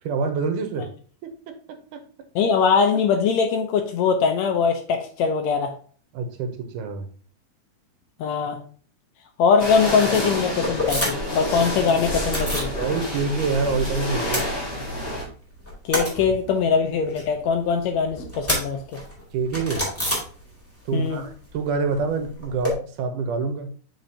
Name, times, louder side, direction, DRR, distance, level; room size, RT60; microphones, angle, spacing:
voice 1, 0.0-0.9 1.5-2.0 6.1-7.1 12.8-14.5 19.3-19.9 20.9-23.7, right 4 dB, 85° right, 7 dB, 2.3 m, -26 dB
voice 2, 2.4-5.7 8.2-8.6 9.4-12.7 15.9-19.0 20.9-21.2, left 6 dB, 75° left, 5 dB, 1.7 m, -22 dB
sound 1, 9.6-15.2, left 1 dB, 35° left, 0.9 m, -28 dB
sound 2, 10.6-11.4 11.7-12.8 13.1-13.9 14.1-15.2 15.5-20.9 21.1-22.7, left 1 dB, 5° left, 1.7 m, -30 dB
7.6 x 5.1 x 2.7 m, 0.44 s
omnidirectional pair, 3.6 m